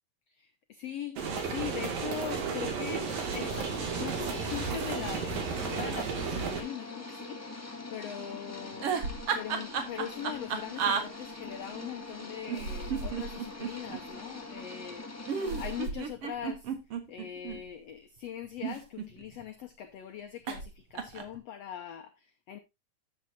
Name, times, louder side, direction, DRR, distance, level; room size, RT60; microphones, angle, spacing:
voice 1, 0.3-9.0 9.3-16.7 17.1-22.6, left 9 dB, 80° left, 1.4 m, -41 dB
sound 1, 1.2-6.6, right 5 dB, 80° right, 4.0 m, -33 dB
sound 2, 3.0-15.9, left 2 dB, 20° left, 0.4 m, -43 dB
sound 3, 8.7-11.0 12.5-14.0 15.3-17.6 18.4-19.4 20.5-20.7 20.9-21.4, right 6 dB, 55° right, 2.1 m, -33 dB
12.0 x 8.7 x 2.8 m
omnidirectional pair, 4.0 m